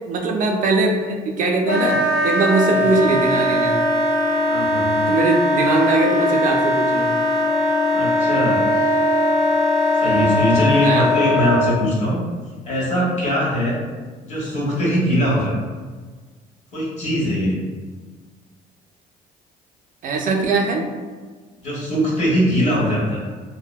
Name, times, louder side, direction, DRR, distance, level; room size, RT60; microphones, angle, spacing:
voice 1, 0.1-2.0 2.2-3.8 5.1-7.1 10.8-11.1 20.0-20.8, right 3 dB, 50° right, 1 dB, 0.4 m, -20 dB
Wind instrument woodwind instrument, 1.6-11.8, left 1 dB, 70° left, 0.5 m, -19 dB
voice 2, 4.5-4.9 7.9-8.6 10.0-12.2 12.6-13.7 14.2-15.5 16.7-17.6 21.6-23.2, equal, 40° left, -6 dB, 1.1 m, -21 dB
2.7 x 2.0 x 2.2 m, 1.4 s
cardioid pair, 110°, 17 cm